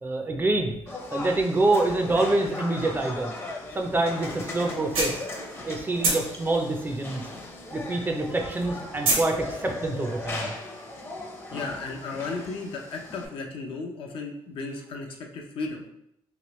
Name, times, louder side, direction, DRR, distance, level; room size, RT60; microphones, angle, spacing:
voice 1, 0.0-3.3 3.7-5.3 5.6-7.3 7.7-10.5, right 2 dB, 20° right, 3 dB, 0.4 m, -26 dB
Work Ambience, 0.9-13.3, left 2 dB, 25° left, 0.6 m, -38 dB
sound 1, 4.9-5.7 6.0-9.3, right 3 dB, 90° right, 1.3 m, -26 dB
voice 2, 11.5-15.8, left 3 dB, 65° left, 2 dB, 0.6 m, -35 dB
3.1 x 2.9 x 3.0 m, 0.76 s
cardioid pair, 115°, 10 cm